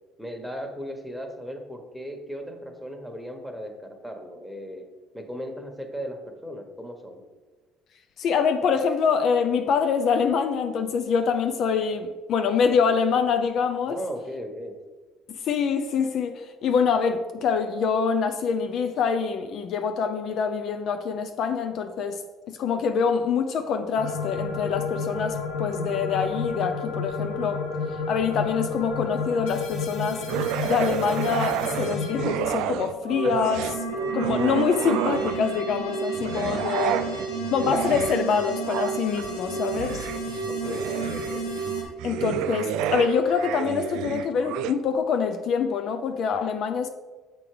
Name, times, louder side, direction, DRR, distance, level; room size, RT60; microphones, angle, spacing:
voice 1, 0.2-4.9 5.1-7.2 13.9-14.8 36.9-37.2 40.5-41.5, equal, ahead, 1.4 m, -37 dB
voice 2, 8.2-14.0 15.3-22.2 22.5-27.6 28.1-30.2 30.6-33.8 34.1-37.0 37.5-40.1 42.0-46.9, left 6 dB, 60° left, 0.5 m, -25 dB
sound 1, 23.9-32.3 32.9-41.8, left 1 dB, 90° left, 1.7 m, -31 dB
sound 2, 30.3-32.9 33.2-35.6 36.1-44.7, right 10 dB, 75° right, 0.3 m, -30 dB
7.0 x 4.7 x 5.0 m
hypercardioid pair, 70°, 0 cm